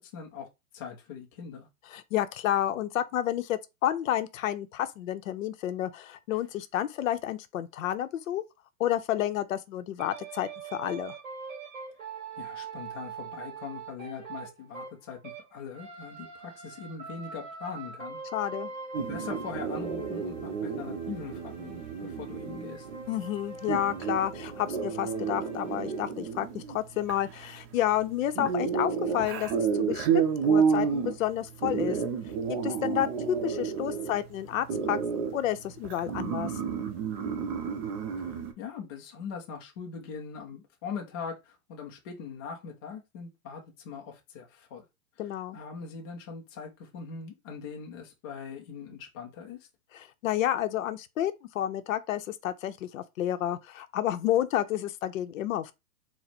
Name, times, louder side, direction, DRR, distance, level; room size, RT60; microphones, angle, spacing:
voice 1, 0.1-0.5 0.7-1.7 12.4-15.2 15.5-18.2 19.0-22.9 38.6-44.9 45.5-49.6, left 6 dB, 20° left, 0.3 m, -41 dB
voice 2, 1.9-8.4 8.8-11.2 18.3-18.7 23.1-32.0 32.5-35.0 35.3-36.5 45.2-45.6 49.9-55.7, left 12 dB, 65° left, 0.7 m, -30 dB
sound 1, 10.0-15.5 15.7-26.0, right 5 dB, 20° right, 2.5 m, -43 dB
sound 2, 18.9-38.5, right 6 dB, 40° right, 0.8 m, -31 dB
4.2 x 2.1 x 4.1 m
hypercardioid pair, 130°, 44 cm